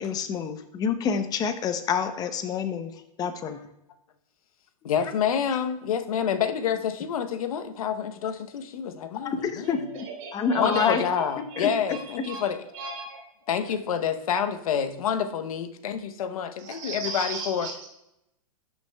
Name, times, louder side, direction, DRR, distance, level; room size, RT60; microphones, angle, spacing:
voice 1, 0.0-2.9 3.2-3.6 9.2-10.1 10.3-11.0 11.4-11.7, left 6 dB, 20° left, 9 dB, 0.7 m, -27 dB
voice 2, 4.8-9.8 10.5-12.7 13.5-17.7, left 8 dB, 80° left, 9 dB, 0.8 m, -28 dB
voice 3, 10.2-11.0 11.5-12.0 12.2-12.4 12.7-13.2 16.6-17.9, right 4 dB, 60° right, -1 dB, 2.7 m, -36 dB
12.0 x 6.0 x 2.3 m, 0.85 s
hypercardioid pair, 140°, 18 cm